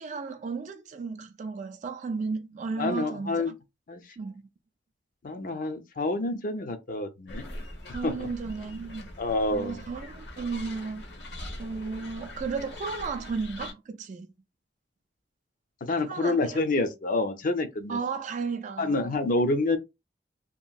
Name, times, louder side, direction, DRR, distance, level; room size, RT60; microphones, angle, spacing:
voice 1, 0.0-3.5 4.2-4.4 7.9-9.1 9.5-11.0 11.6-14.3 16.0-16.6 17.9-19.1, right 4 dB, 45° right, 0.3 m, -34 dB
voice 2, 2.8-3.5 3.9-4.0 5.2-7.5 8.0-8.3 8.8-9.8 15.8-18.0 18.8-19.8, left 2 dB, 50° left, 0.5 m, -28 dB
sound 1, 7.3-13.7, left 1 dB, 70° left, 0.9 m, -42 dB
2.9 x 2.6 x 2.3 m
head